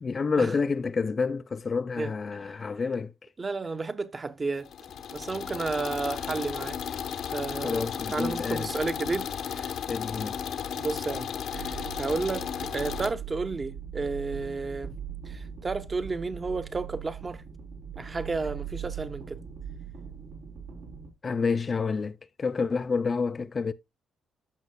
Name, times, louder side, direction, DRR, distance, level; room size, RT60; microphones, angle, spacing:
voice 1, 0.0-3.1 7.6-8.7 9.9-10.4 21.2-23.7, left 5 dB, 35° left, 0.4 m, -28 dB
voice 2, 2.0-2.6 3.4-4.7 5.1-6.8 7.3-7.8 8.1-9.7 10.7-14.9 15.2-17.4 18.0-19.4, right 3 dB, 30° right, 0.9 m, -32 dB
sound 1, 4.6-13.1, left 8 dB, 70° left, 1.0 m, -34 dB
sound 2, 11.5-21.1, right 8 dB, 85° right, 3.3 m, -40 dB
14.0 x 5.5 x 2.3 m
cardioid pair, 90°, 0 cm